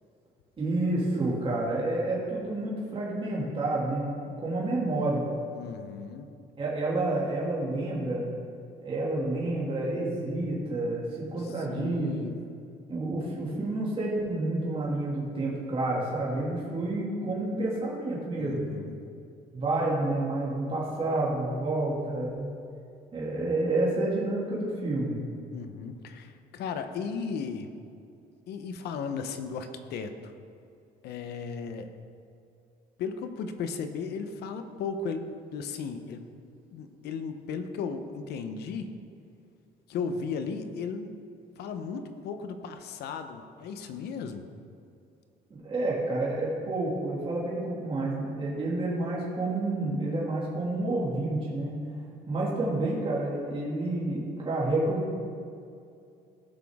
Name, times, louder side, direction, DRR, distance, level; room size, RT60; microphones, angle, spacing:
voice 1, 0.6-5.2 6.6-8.2 8.8-12.1 12.9-18.7 19.5-22.5 23.1-25.2 45.5-51.8 52.3-55.1, right 2 dB, 30° right, -5 dB, 2.4 m, -29 dB
voice 2, 5.5-6.3 11.4-12.4 18.4-19.0 25.5-27.7 28.5-30.3 31.0-31.9 33.0-36.2 36.7-38.9 39.9-41.1 41.6-44.5, left 5 dB, 75° left, 8 dB, 0.9 m, -35 dB
16.5 x 6.1 x 3.6 m, 2.5 s
cardioid pair, 110°, 17 cm